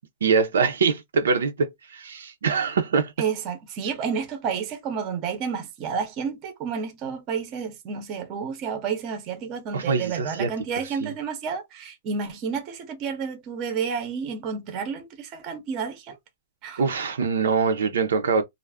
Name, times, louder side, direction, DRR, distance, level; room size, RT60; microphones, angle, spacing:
voice 1, 0.2-3.1 9.7-10.5 10.8-11.1 16.8-18.4, right 5 dB, 80° right, 0.5 m, -24 dB
voice 2, 3.2-16.1 16.6-16.8, right 6 dB, 25° right, 0.6 m, -30 dB
2.3 x 2.0 x 3.4 m
hypercardioid pair, 165°, 0 cm